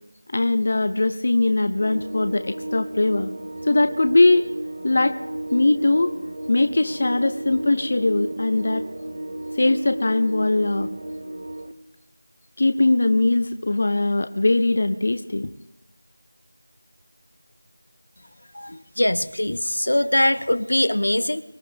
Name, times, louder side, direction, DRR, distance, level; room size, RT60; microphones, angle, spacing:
voice 1, 0.3-3.3 3.6-4.4 4.8-5.2 5.5-6.1 6.5-8.9 9.6-10.9 12.6-15.5, left 2 dB, 25° left, 9 dB, 0.5 m, -20 dB
sound 1, 1.8-11.7, right 1 dB, 35° right, 0.6 m, -33 dB
voice 2, 18.5-21.4, left 1 dB, 70° left, 14 dB, 0.9 m, -22 dB
24.0 x 13.0 x 3.4 m, 0.89 s
figure-of-eight pair, 180°, 0 cm